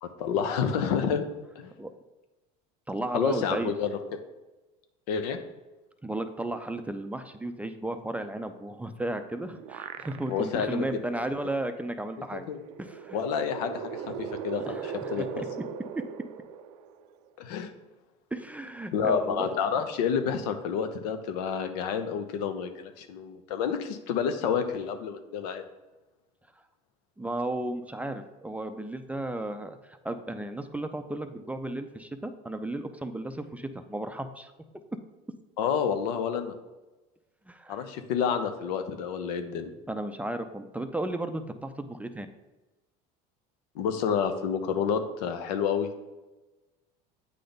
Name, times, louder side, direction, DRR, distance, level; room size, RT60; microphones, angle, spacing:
voice 1, 0.0-1.2 1.5-1.7 3.1-4.2 5.1-5.4 10.3-10.8 11.1-11.2 12.3-12.6 13.1-15.4 17.4-17.7 18.9-25.6 35.6-36.5 37.7-39.7 43.7-45.9, left 7 dB, 85° left, 8 dB, 0.7 m, -29 dB
voice 2, 2.9-3.7 6.0-12.5 12.8-13.2 14.7-15.5 15.9-16.0 18.3-19.5 27.2-34.5 37.5-37.8 39.9-42.3, right 1 dB, 5° right, 8 dB, 0.4 m, -34 dB
sound 1, 9.2-10.7 11.1-11.2 12.5-17.3, right 7 dB, 90° right, 0.4 m, -39 dB
8.5 x 3.3 x 3.9 m, 1.1 s
supercardioid pair, 100°, 20 cm